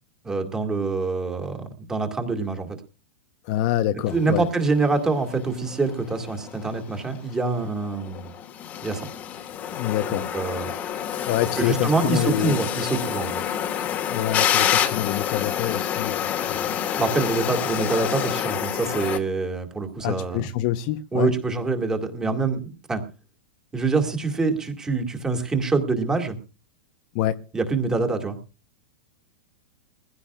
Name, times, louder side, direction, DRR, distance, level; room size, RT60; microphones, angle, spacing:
voice 1, 0.2-2.8 4.1-8.3 8.8-9.1 10.1-10.7 11.6-13.4 17.0-20.5 21.1-23.0 23.7-26.4 27.5-28.4, right 3 dB, 10° right, 2.1 m, -25 dB
voice 2, 3.5-4.5 9.7-10.3 11.2-12.6 14.1-16.7 20.0-21.3 27.1-27.3, left 13 dB, 40° left, 0.9 m, -26 dB
sound 1, 4.1-19.2, left 10 dB, 25° left, 1.5 m, -28 dB
22.0 x 15.5 x 2.4 m
supercardioid pair, 160°, 6 cm